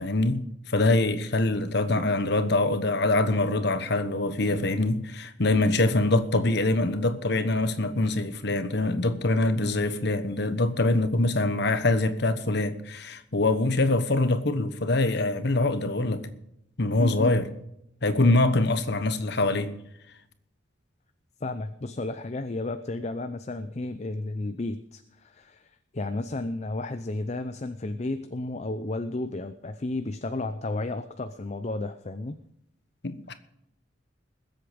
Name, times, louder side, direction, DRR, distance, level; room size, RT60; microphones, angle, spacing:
voice 1, 0.0-16.3 16.8-17.5 18.0-19.7 33.0-33.3, left 2 dB, 60° left, 1.2 m, -24 dB
voice 2, 17.0-17.3 21.4-32.4, left 2 dB, 35° left, 0.6 m, -33 dB
20.5 x 8.0 x 5.1 m
head